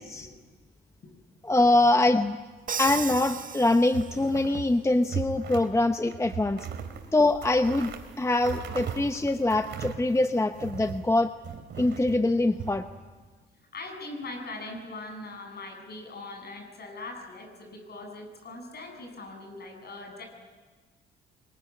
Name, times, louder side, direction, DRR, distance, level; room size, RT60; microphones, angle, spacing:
voice 1, 1.4-2.4 2.8-6.7 7.1-11.3 11.8-12.8, left 2 dB, 15° left, 9 dB, 0.9 m, -24 dB
Crash cymbal, 2.7-4.4, right 6 dB, 45° right, 1.7 m, -35 dB
sound 1, 2.8-3.5 3.9-4.7 5.0-5.7 6.1-11.1 11.4-12.7, right 8 dB, 65° right, 3.0 m, -38 dB
voice 2, 13.7-20.3, left 2 dB, 55° left, 3 dB, 8.0 m, -41 dB
23.5 x 22.0 x 9.9 m, 1.4 s
cardioid pair, 90°, 20 cm